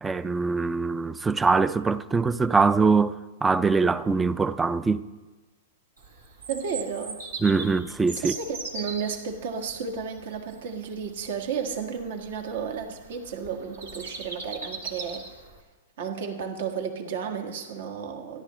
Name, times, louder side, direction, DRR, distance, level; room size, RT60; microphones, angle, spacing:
voice 1, 0.0-5.1 7.4-8.4, right 4 dB, 10° right, 0.5 m, -23 dB
Bird vocalization bird call bird song, 6.0-15.6, right 4 dB, 80° right, 2.1 m, -40 dB
voice 2, 6.5-7.2 8.2-15.3 16.0-18.4, right 6 dB, 65° right, 1.6 m, -33 dB
28.0 x 11.5 x 3.1 m
hypercardioid pair, 115°, 0 cm